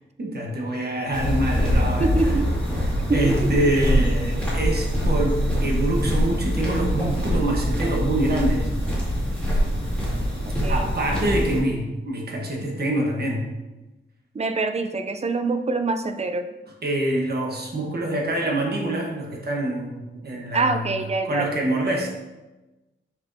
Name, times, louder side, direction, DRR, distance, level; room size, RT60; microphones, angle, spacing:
voice 1, 0.2-2.1 3.1-8.7 10.7-13.5 16.8-22.1, right 1 dB, 50° right, 0 dB, 1.2 m, -25 dB
sound 1, 1.1-11.6, equal, 5° left, 2.1 m, -24 dB
voice 2, 2.0-2.5 3.1-3.7 10.5-10.9 14.3-16.5 20.5-21.5, right 3 dB, 30° right, 8 dB, 0.4 m, -25 dB
7.0 x 5.9 x 2.7 m, 1.1 s
wide cardioid pair, 180°, 21 cm